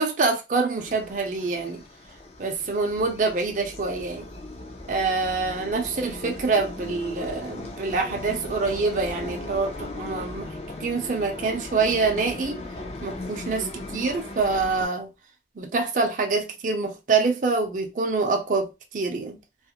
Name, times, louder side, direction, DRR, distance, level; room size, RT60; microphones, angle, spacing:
voice 1, 0.0-1.8 2.4-4.3 4.9-10.5 10.8-12.6 13.0-15.1 15.6-19.4, right 4 dB, 45° right, 0.5 m, -26 dB
sound 1, 0.8-14.9, left 2 dB, 35° left, 0.4 m, -38 dB
2.4 x 2.0 x 2.8 m
head